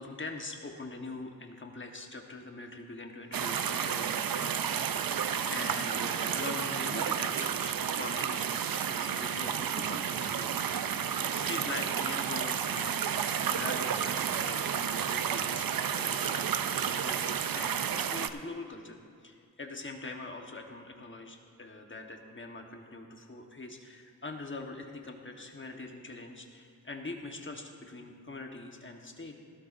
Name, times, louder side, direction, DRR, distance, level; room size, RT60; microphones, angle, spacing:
voice 1, 0.0-5.2 5.5-10.5 11.3-13.0 13.4-15.7 15.9-29.3, left 3 dB, 30° left, 3 dB, 1.2 m, -43 dB
sound 1, 3.3-18.3, right 8 dB, 65° right, 0.5 m, -31 dB
17.0 x 12.0 x 2.5 m, 2.2 s
wide cardioid pair, 75°, 37 cm